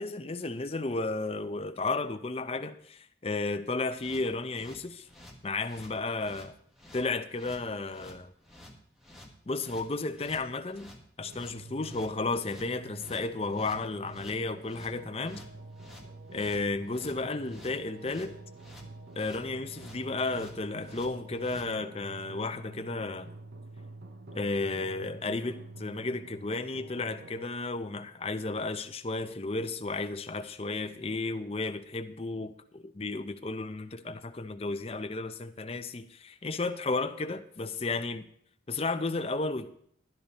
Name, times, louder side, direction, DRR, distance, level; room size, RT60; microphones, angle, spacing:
voice 1, 0.0-5.1 5.4-6.5 6.9-8.3 9.5-15.4 16.3-18.3 19.2-23.3 24.3-38.3 38.7-39.7, left 3 dB, 30° left, 8 dB, 0.6 m, -33 dB
sound 1, 3.9-21.7, left 1 dB, ahead, 1.4 m, -52 dB
sound 2, 11.2-27.5, right 2 dB, 55° right, 0.7 m, -48 dB
12.0 x 10.5 x 4.2 m, 0.68 s
head